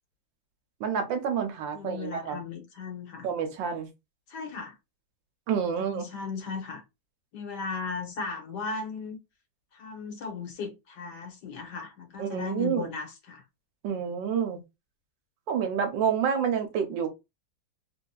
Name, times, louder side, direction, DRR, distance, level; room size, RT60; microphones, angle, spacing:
voice 1, 0.8-2.4 3.2-3.9 5.5-6.0 12.2-12.9 13.8-14.6 15.5-17.1, right 7 dB, 80° right, 1.4 m, -28 dB
voice 2, 1.7-3.3 4.3-4.8 5.8-6.8 7.3-9.2 9.7-13.4, left 4 dB, 65° left, 1.5 m, -36 dB
3.5 x 2.6 x 2.3 m
omnidirectional pair, 2.0 m